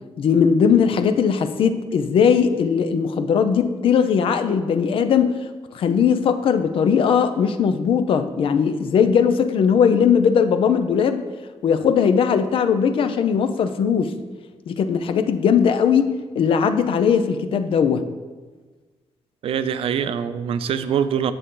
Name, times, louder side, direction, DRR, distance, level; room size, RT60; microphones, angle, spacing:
voice 1, 0.2-5.4 5.7-11.2 11.6-14.1 14.7-18.0, left 7 dB, 60° left, 10 dB, 0.6 m, -19 dB
voice 2, 19.4-21.3, right 8 dB, 65° right, 12 dB, 0.5 m, -23 dB
9.8 x 6.8 x 3.8 m, 1.3 s
wide cardioid pair, 170°, 10 cm